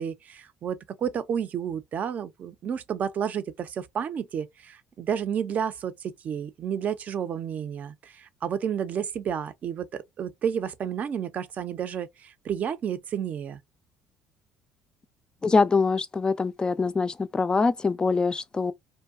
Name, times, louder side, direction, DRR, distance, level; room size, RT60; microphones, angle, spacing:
voice 1, 0.0-13.6, right 8 dB, 50° right, 0.5 m, -31 dB
voice 2, 15.4-18.7, left 4 dB, 25° left, 0.3 m, -24 dB
2.7 x 2.2 x 2.3 m
hypercardioid pair, 65°, 3 cm